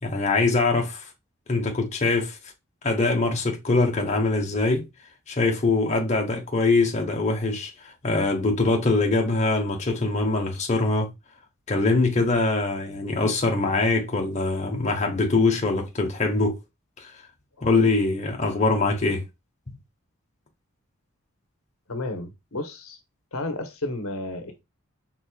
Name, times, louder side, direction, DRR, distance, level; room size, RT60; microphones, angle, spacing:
voice 1, 0.0-1.0 1.5-2.4 2.8-4.9 5.3-7.7 8.0-11.1 11.7-16.6 17.0-17.1 17.6-19.2, left 3 dB, 35° left, 1.0 m, -23 dB
voice 2, 21.9-23.0 23.3-24.6, left 2 dB, 90° left, 1.0 m, -32 dB
4.6 x 3.8 x 2.3 m
head